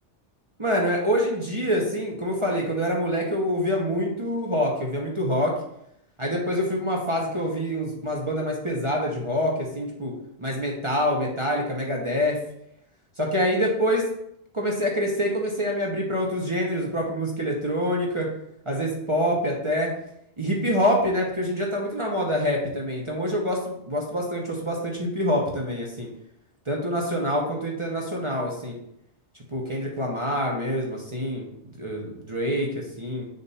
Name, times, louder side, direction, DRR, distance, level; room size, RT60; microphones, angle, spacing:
voice 1, 0.6-5.6 6.2-10.1 10.4-12.4 13.2-14.1 14.5-18.3 18.7-19.9 20.4-26.1 26.7-28.8 29.5-31.5 31.8-33.3, equal, 30° right, -2 dB, 0.9 m, -26 dB
7.0 x 2.7 x 5.6 m, 0.76 s
omnidirectional pair, 1.2 m